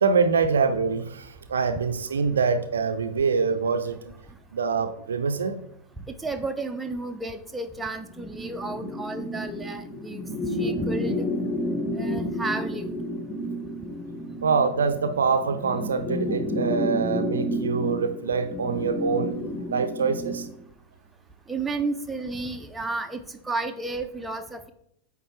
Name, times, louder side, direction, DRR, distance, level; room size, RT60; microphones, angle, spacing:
voice 1, 0.0-4.1 4.5-5.6 14.4-20.5, right 5 dB, 70° right, 9 dB, 0.5 m, -25 dB
voice 2, 6.1-10.3 10.6-11.3 11.9-12.9 21.5-24.7, right 3 dB, 10° right, 6 dB, 0.6 m, -32 dB
sound 1, 8.1-20.5, equal, 15° left, 1.0 m, -31 dB
8.5 x 3.4 x 4.7 m, 0.73 s
figure-of-eight pair, 90°, 0 cm